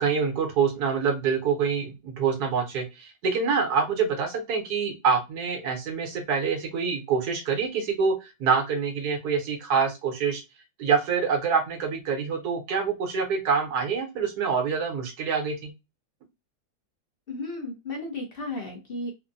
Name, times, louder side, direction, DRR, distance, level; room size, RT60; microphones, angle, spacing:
voice 1, 0.0-10.4 10.8-15.7, right 6 dB, 75° right, 4 dB, 1.4 m, -26 dB
voice 2, 17.3-19.1, left 2 dB, 50° left, 2 dB, 0.7 m, -34 dB
3.5 x 2.1 x 2.5 m, 0.23 s
omnidirectional pair, 1.7 m